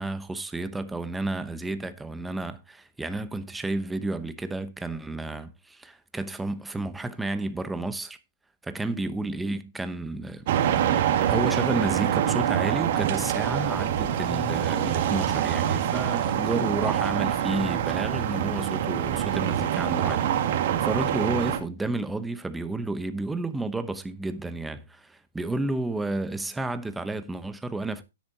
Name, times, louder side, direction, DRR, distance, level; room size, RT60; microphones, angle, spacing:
voice 1, 0.0-8.2 8.6-10.5 11.3-20.3 20.6-28.0, right 2 dB, 5° right, 0.9 m, -31 dB
sound 1, 10.5-21.6, right 10 dB, 50° right, 1.9 m, -25 dB
12.0 x 10.5 x 2.8 m
hypercardioid pair, 145°, 0 cm